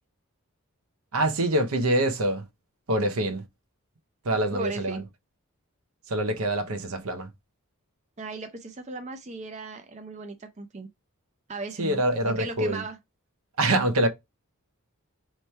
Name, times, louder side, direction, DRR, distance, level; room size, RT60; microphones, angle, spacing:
voice 1, 1.1-2.5 2.9-3.4 4.2-5.0 6.1-7.3 11.8-12.8 13.6-14.1, right 1 dB, 75° right, 0.8 m, -25 dB
voice 2, 4.5-5.0 8.2-10.9 11.5-13.0, right 3 dB, 30° right, 0.5 m, -37 dB
4.2 x 3.2 x 3.2 m
head